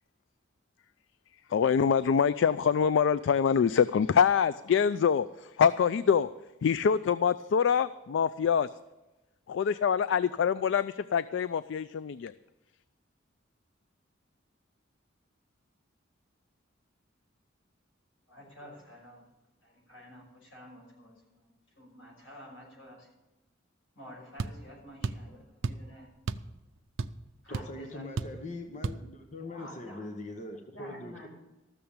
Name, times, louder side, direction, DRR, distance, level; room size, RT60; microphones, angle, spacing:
voice 1, 1.5-6.3 6.6-8.7 9.5-12.3, left 7 dB, 65° left, 15 dB, 0.3 m, -25 dB
voice 2, 18.3-19.3 19.6-21.4 21.8-23.1 24.0-26.1 27.4-28.0 29.5-30.1 30.7-31.3, equal, 90° left, -2 dB, 5.8 m, -50 dB
sound 1, 24.4-24.6 25.0-25.3 25.6-25.9 26.3-26.5 26.8-27.3 27.5-27.7 28.2-28.4 28.8-29.0, right 4 dB, 75° right, 0.5 m, -33 dB
voice 3, 27.5-31.3, left 2 dB, 40° left, 4 dB, 1.0 m, -41 dB
14.0 x 6.9 x 8.7 m, 1.0 s
head